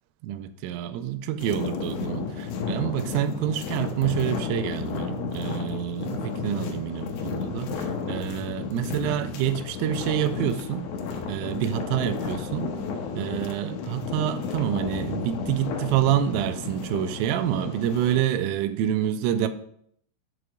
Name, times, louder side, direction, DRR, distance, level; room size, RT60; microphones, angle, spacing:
voice 1, 0.2-10.9 11.3-12.7 13.2-19.5, right 11 dB, 85° right, 11 dB, 3.0 m, -27 dB
sound 1, 1.4-18.2, left 5 dB, 85° left, 2.5 m, -33 dB
6.9 x 4.7 x 4.9 m, 0.68 s
omnidirectional pair, 5.8 m